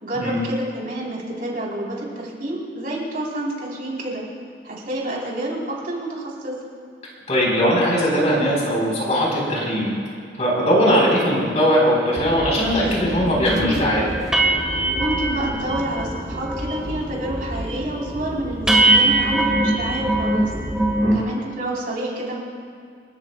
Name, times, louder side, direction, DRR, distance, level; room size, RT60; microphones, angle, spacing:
voice 1, 0.0-4.2 4.6-6.5 15.0-20.5 21.0-22.4, right 1 dB, 55° right, -4 dB, 4.0 m, -28 dB
voice 2, 7.3-9.9 10.4-14.1 21.0-21.2, equal, 40° left, -4 dB, 4.5 m, -19 dB
sound 1, 12.2-21.2, right 1 dB, 20° right, 0.9 m, -31 dB
sound 2, 12.8-12.9 13.3-13.5 13.8-13.9 14.3-16.1 16.4-16.9 17.1-17.6 18.0-18.1 18.7-21.2, right 2 dB, 5° right, 1.6 m, -21 dB
27.5 x 13.5 x 2.4 m, 2.3 s
head